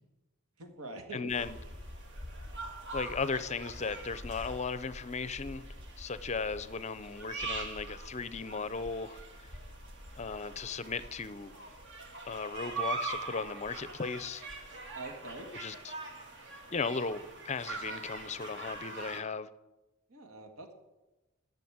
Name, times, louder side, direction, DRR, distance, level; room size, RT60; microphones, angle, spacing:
voice 1, 0.6-1.3 14.9-15.5 20.1-20.8, right 2 dB, 80° right, 1.8 m, -45 dB
voice 2, 1.1-1.6 2.9-5.6 6.0-9.5 10.2-11.6 12.3-14.4 15.5-15.9 16.7-19.5, left 4 dB, 30° left, 0.5 m, -36 dB
sound 1, 1.3-19.2, right 3 dB, 55° right, 1.9 m, -43 dB
12.0 x 6.6 x 8.7 m
head